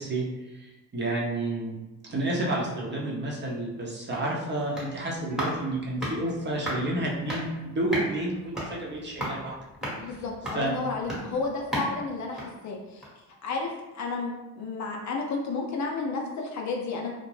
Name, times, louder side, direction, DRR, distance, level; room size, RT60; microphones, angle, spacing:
voice 1, 0.0-1.8 2.1-9.5 10.5-10.7, right 1 dB, 30° right, -3 dB, 0.7 m, -30 dB
sound 1, 4.1-13.3 13.6-13.7, equal, ahead, 1.0 m, -37 dB
voice 2, 10.0-13.0 13.4-17.1, left 3 dB, 50° left, 1 dB, 0.5 m, -32 dB
2.4 x 2.1 x 3.2 m, 1.0 s
cardioid pair, 90°, 38 cm